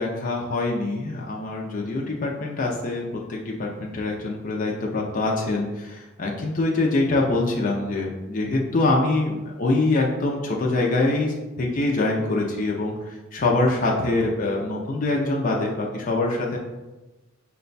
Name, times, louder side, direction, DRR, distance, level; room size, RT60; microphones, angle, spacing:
voice 1, 0.0-16.6, left 2 dB, 40° left, -1 dB, 0.5 m, -24 dB
6.0 x 2.2 x 3.9 m, 1.1 s
head